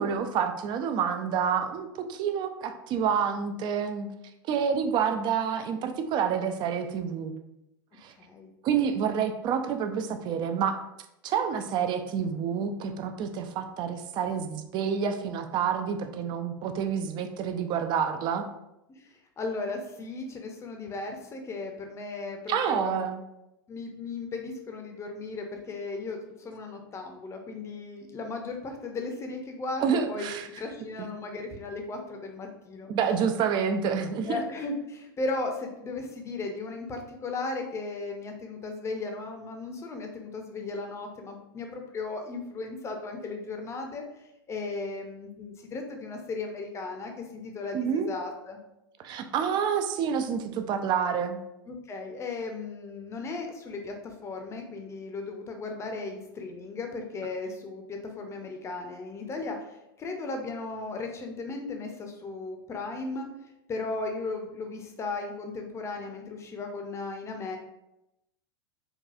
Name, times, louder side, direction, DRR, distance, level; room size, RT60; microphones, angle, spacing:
voice 1, 0.0-4.1 4.5-7.3 8.0-8.1 8.6-10.8 11.2-18.5 22.5-23.2 29.8-30.5 32.9-34.4 47.7-48.1 49.0-51.4, right 7 dB, 35° right, 7 dB, 0.4 m, -28 dB
voice 2, 8.2-8.5 19.0-23.0 23.7-30.3 30.6-32.9 34.3-44.0 44.5-48.6 51.7-59.7 60.0-63.3 63.7-67.6, left 3 dB, 20° left, 3 dB, 0.6 m, -36 dB
4.0 x 2.3 x 2.4 m, 0.88 s
hypercardioid pair, 90°, 12 cm